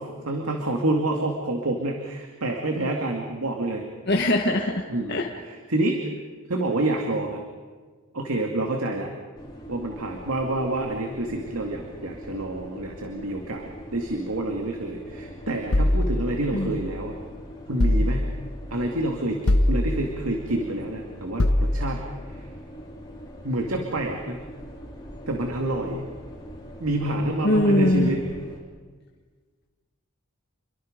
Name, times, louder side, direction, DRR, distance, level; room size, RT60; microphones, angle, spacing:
voice 1, 0.0-3.8 4.9-6.1 6.5-7.4 8.1-9.1 9.7-17.2 17.7-18.3 18.7-22.0 22.3-22.5 23.4-24.4 25.3-26.0 26.8-28.2, right 1 dB, 85° right, 2 dB, 2.3 m, -28 dB
voice 2, 4.1-4.8 5.1-5.3 16.5-16.7 27.4-28.1, left 1 dB, 50° left, 0 dB, 1.7 m, -21 dB
sound 1, 9.4-28.6, equal, 20° left, 3.6 m, -42 dB
sound 2, 15.7-17.1 17.8-18.6 19.5-20.4 21.4-22.2, left 1 dB, 90° left, 1.1 m, -23 dB
29.0 x 23.0 x 5.2 m, 1.5 s
head